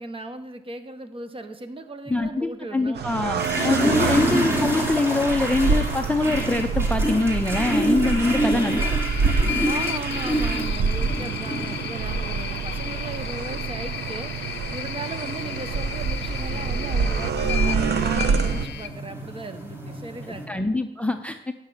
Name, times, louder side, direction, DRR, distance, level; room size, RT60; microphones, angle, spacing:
voice 1, 0.0-3.0 8.0-8.4 9.4-20.7, right 2 dB, 25° right, 9 dB, 1.0 m, -37 dB
voice 2, 2.1-9.0 20.3-21.5, left 2 dB, 5° left, 8 dB, 0.6 m, -24 dB
sound 1, 3.0-18.7, right 5 dB, 55° right, 0.9 m, -26 dB
sound 2, 3.4-20.4, equal, 10° right, 2.6 m, -29 dB
sound 3, 8.4-18.9, left 11 dB, 60° left, 0.7 m, -34 dB
10.5 x 5.7 x 6.3 m, 0.94 s
cardioid pair, 90°, 20 cm